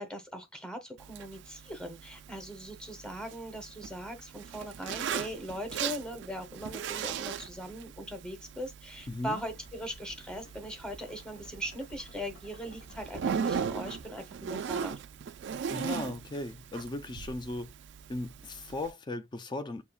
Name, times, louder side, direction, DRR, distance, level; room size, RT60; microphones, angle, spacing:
voice 1, 0.0-14.9, equal, 5° left, 0.9 m, -40 dB
Zipper (clothing), 1.0-18.9, right 7 dB, 60° right, 0.3 m, -39 dB
sound 1, 8.9-14.1, equal, 75° left, 1.9 m, -55 dB
voice 2, 9.1-9.4 15.7-17.7 18.1-19.8, left 2 dB, 20° left, 0.3 m, -37 dB
6.5 x 2.8 x 2.3 m
head